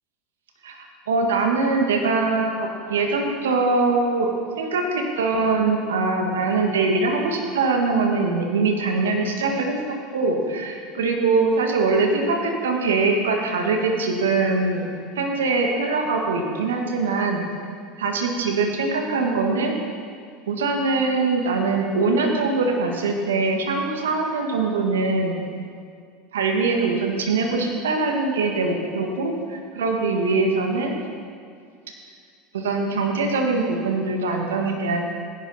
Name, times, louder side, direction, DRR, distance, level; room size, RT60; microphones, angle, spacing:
voice 1, 0.6-4.3 4.6-14.9 15.2-17.4 18.0-19.8 20.5-25.4 26.3-31.0 32.5-35.1, right 3 dB, 85° right, 2 dB, 1.7 m, -22 dB
16.0 x 11.0 x 4.3 m, 2.2 s
hypercardioid pair, 85°, 0 cm